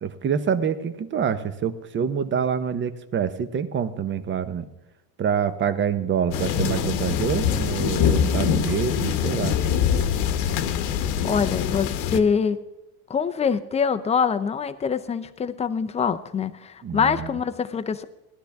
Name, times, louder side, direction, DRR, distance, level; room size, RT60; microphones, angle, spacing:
voice 1, 0.0-4.7 5.2-9.6 16.8-17.3, right 7 dB, 30° right, 12 dB, 0.9 m, -26 dB
sound 1, 6.3-12.2, left 8 dB, 75° left, 1.2 m, -24 dB
voice 2, 11.2-12.6 13.1-18.0, left 6 dB, 15° left, 11 dB, 0.6 m, -24 dB
18.5 x 12.0 x 3.5 m, 0.95 s
cardioid pair, 135°, 39 cm